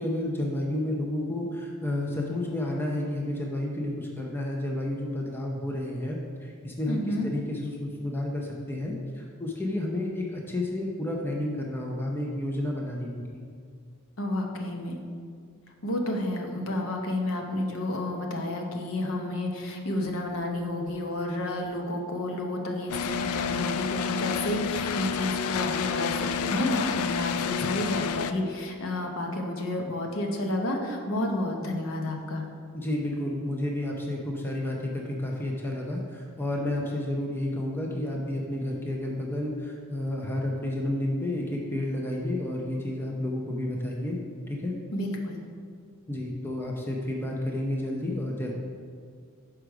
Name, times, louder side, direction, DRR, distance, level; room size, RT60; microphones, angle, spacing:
voice 1, 0.0-13.4 32.7-44.2 44.5-44.8 46.1-48.5, left 1 dB, 10° left, -1 dB, 0.6 m, -31 dB
voice 2, 6.9-7.3 14.2-15.0 15.8-32.4 44.9-45.4, left 1 dB, 70° left, 2 dB, 0.8 m, -30 dB
sound 1, 22.9-28.3, left 7 dB, 85° left, 0.3 m, -30 dB
6.4 x 4.9 x 4.6 m, 2.1 s
head